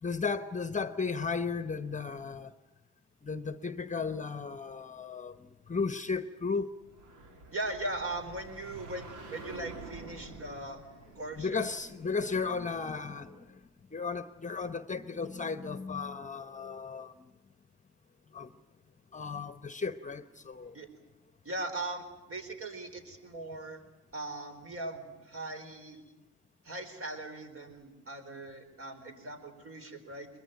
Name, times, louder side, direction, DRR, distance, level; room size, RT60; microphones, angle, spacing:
voice 1, 0.0-2.6 3.2-6.7 11.3-13.6 13.9-17.3 18.3-18.5 19.1-20.8, left 4 dB, 25° left, 12 dB, 1.0 m, -35 dB
sound 1, 6.8-13.4, right 3 dB, 90° right, 3.2 m, -49 dB
voice 2, 7.5-10.8 11.1-11.6 20.7-20.9 21.4-23.8 24.1-26.0 26.6-30.3, right 2 dB, 45° right, 6 dB, 4.5 m, -39 dB
22.0 x 21.0 x 9.2 m, 1.0 s
cardioid pair, 90°, 30 cm